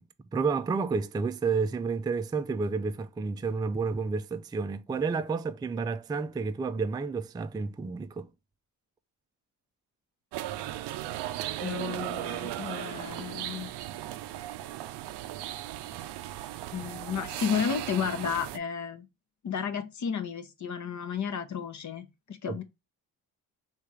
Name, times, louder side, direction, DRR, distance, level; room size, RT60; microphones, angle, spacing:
voice 1, 0.3-8.3 22.5-22.6, right 4 dB, 10° right, 0.3 m, -30 dB
sound 1, 10.3-18.6, right 14 dB, 85° right, 0.5 m, -37 dB
voice 2, 11.6-13.7 16.7-19.1 19.4-22.6, left 7 dB, 45° left, 0.8 m, -33 dB
3.3 x 2.9 x 4.7 m
cardioid pair, 70°, 39 cm